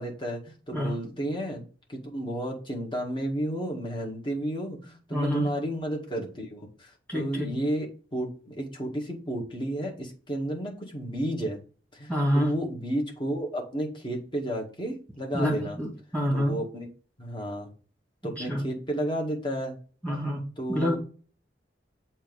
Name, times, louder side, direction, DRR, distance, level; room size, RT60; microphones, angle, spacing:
voice 1, 0.0-1.6 1.9-11.6 11.9-15.8 16.3-16.9 17.2-17.7 18.2-19.7 20.6-21.0, right 1 dB, 25° left, -1 dB, 1.8 m, -32 dB
voice 2, 5.1-5.5 7.1-7.6 12.1-12.5 15.3-16.5 18.4-18.6 20.0-21.0, equal, 5° left, -2 dB, 2.5 m, -27 dB
7.3 x 3.0 x 5.4 m, 0.37 s
head